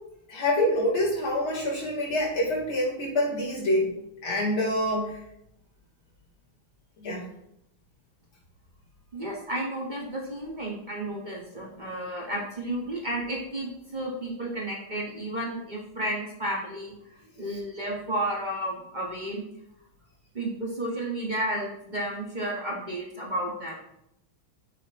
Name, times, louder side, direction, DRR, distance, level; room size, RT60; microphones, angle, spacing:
voice 1, 0.3-3.9 4.2-5.1 7.0-7.2, left 1 dB, 90° left, -5 dB, 3.9 m, -26 dB
voice 2, 9.1-17.0 17.4-19.4 20.3-23.8, right 1 dB, 25° right, -2 dB, 1.5 m, -32 dB
10.5 x 7.5 x 3.1 m, 0.78 s
omnidirectional pair, 2.2 m